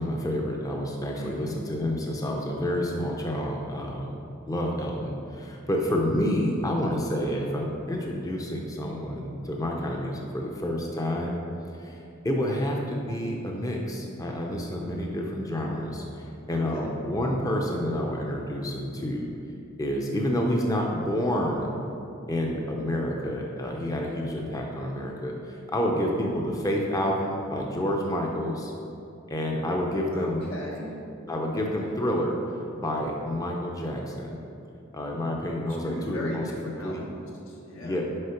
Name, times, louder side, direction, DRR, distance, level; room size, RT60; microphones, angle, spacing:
voice 1, 0.0-4.2 4.5-11.4 11.7-12.0 12.2-19.3 19.8-21.7 22.3-28.7 29.3-30.4 31.3-34.4 34.9-36.4 36.8-37.0 37.8-38.0, equal, 15° left, 0 dB, 0.6 m, -29 dB
voice 2, 1.1-1.6 16.4-16.9 30.1-31.0 31.7-32.1 35.8-37.2 37.5-38.0, left 1 dB, 80° left, -2 dB, 1.5 m, -39 dB
6.4 x 5.0 x 5.8 m, 2.7 s
head